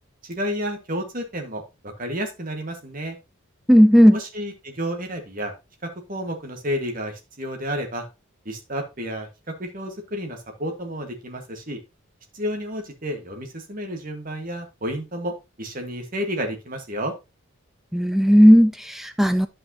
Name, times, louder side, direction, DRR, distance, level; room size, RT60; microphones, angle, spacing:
voice 1, 0.2-3.2 4.1-5.5 6.1-8.1 8.4-9.3 9.6-11.8 12.3-17.1, equal, 40° right, 1.6 m, -31 dB
voice 2, 3.7-4.1 17.9-19.5, equal, ahead, 0.3 m, -14 dB
11.0 x 5.4 x 2.8 m
head